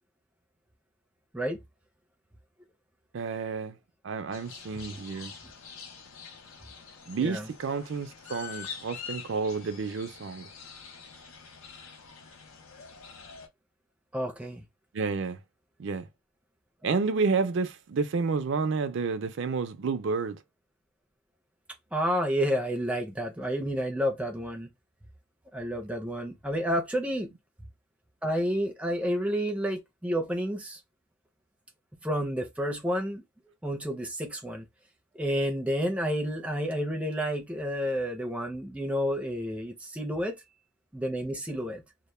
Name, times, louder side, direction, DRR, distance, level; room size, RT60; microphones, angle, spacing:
voice 1, 3.1-3.8 4.0-5.3 7.1-10.5 14.9-15.4 15.8-16.1 16.8-20.4, right 4 dB, 60° right, 0.4 m, -30 dB
sound 1, 4.3-13.5, left 6 dB, 80° left, 0.6 m, -45 dB
voice 2, 14.1-14.6 21.9-24.7 25.5-27.3 28.2-30.8 32.0-33.2 33.6-34.7 35.1-40.4 40.9-41.8, equal, 5° right, 0.5 m, -30 dB
2.1 x 2.1 x 3.0 m
head